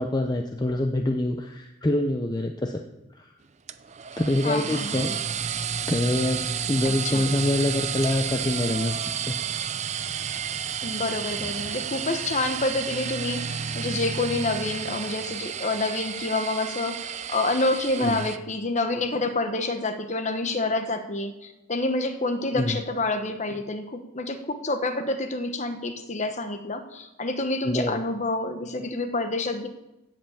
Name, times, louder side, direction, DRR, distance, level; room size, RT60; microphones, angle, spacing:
voice 1, 0.0-2.8 3.2-3.3 4.1-5.2 5.9-9.0 9.3-9.4 18.0-18.3 22.5-22.8 27.6-28.0, left 1 dB, 20° left, 4 dB, 0.7 m, -25 dB
sound 1, 3.7-18.4, right 7 dB, 35° right, 0.5 m, -31 dB
voice 2, 4.4-5.1 6.8-7.3 10.8-29.7, left 2 dB, 35° left, 7 dB, 1.2 m, -28 dB
16.5 x 5.7 x 7.2 m, 0.96 s
head